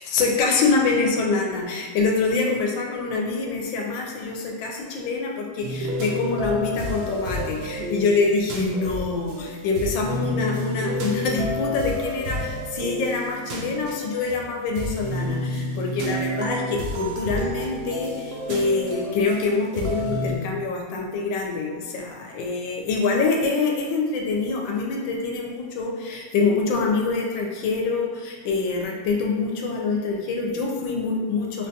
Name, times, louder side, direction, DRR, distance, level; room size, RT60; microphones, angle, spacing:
voice 1, 0.1-31.7, left 4 dB, 80° left, 0 dB, 1.3 m, -25 dB
sound 1, 5.6-20.4, left 1 dB, 80° right, 0.8 m, -30 dB
3.9 x 2.3 x 2.6 m, 1.5 s
omnidirectional pair, 2.1 m